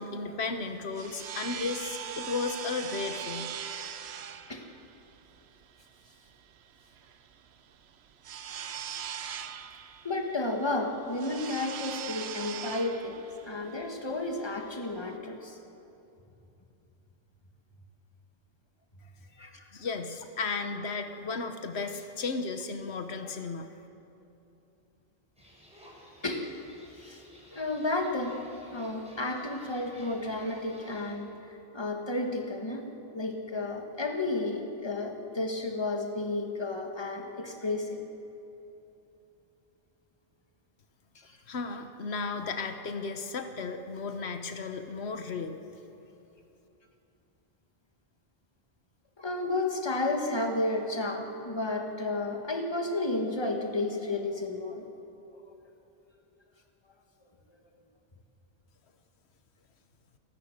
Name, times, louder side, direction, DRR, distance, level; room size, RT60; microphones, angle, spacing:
voice 1, 0.0-3.5 19.4-23.7 41.5-45.6, left 4 dB, 90° left, 7 dB, 1.3 m, -34 dB
sound 1, 0.6-15.2, right 8 dB, 80° right, 1.0 m, -41 dB
voice 2, 10.0-15.6 19.4-19.6 26.2-26.5 26.9-27.2 27.5-28.5 28.7-31.3 31.7-32.9 33.1-38.0 41.3-41.4 49.2-54.8, left 2 dB, 25° left, 3 dB, 1.7 m, -32 dB
sound 2, 25.4-31.1, equal, 5° right, 4.8 m, -55 dB
29.0 x 15.5 x 6.6 m, 2.9 s
omnidirectional pair, 1.1 m